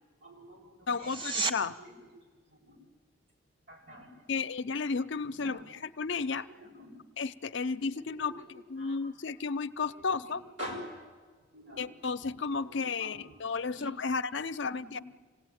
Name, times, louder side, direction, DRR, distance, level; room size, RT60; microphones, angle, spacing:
voice 1, 0.2-0.7 1.0-1.2 1.8-2.1 2.5-2.8 3.7-4.1 5.3-5.6 6.5-7.0 8.1-9.0 9.9-10.0 10.6-11.0 11.5-11.9 12.7-13.2 13.6-13.9 14.8-15.0, equal, 70° right, -1 dB, 7.3 m, -46 dB
voice 2, 0.9-1.8 4.3-6.5 7.2-10.4 11.8-15.0, left 4 dB, 65° left, 12 dB, 0.6 m, -33 dB
sound 1, 1.0-1.6 12.9-13.0, right 3 dB, 25° right, 0.8 m, -32 dB
26.5 x 17.5 x 9.4 m, 1.5 s
head